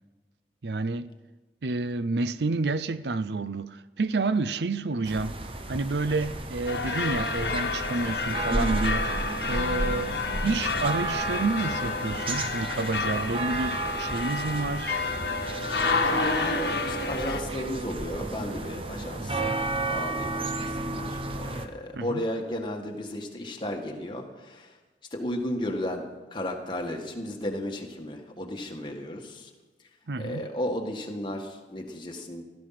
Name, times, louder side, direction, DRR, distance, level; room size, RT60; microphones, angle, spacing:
voice 1, 0.6-1.1 1.6-5.4 5.7-9.1 9.5-15.0 21.9-22.2 30.1-30.5, right 3 dB, 75° right, 0.6 m, -29 dB
sound 1, 5.0-21.7, right 2 dB, 30° right, 1.0 m, -32 dB
sound 2, 6.7-17.4, left 4 dB, 75° left, 1.2 m, -30 dB
voice 2, 15.7-19.5 19.9-24.8 25.1-29.5 30.2-32.4, left 1 dB, 25° left, 1.8 m, -34 dB
16.5 x 13.0 x 5.9 m
head